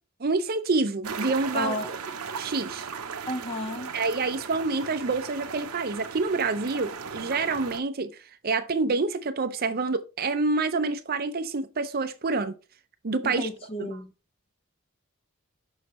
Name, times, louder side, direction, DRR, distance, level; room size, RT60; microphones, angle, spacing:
voice 1, 0.2-2.0 2.4-2.9 3.9-8.1 8.4-12.5 13.0-13.5 13.8-14.0, right 3 dB, 45° right, 0.6 m, -27 dB
sound 1, 1.0-7.8, right 6 dB, 90° right, 0.7 m, -37 dB
voice 2, 1.5-1.9 3.3-3.9 13.2-14.1, left 1 dB, 25° left, 0.7 m, -32 dB
6.4 x 6.1 x 3.1 m
head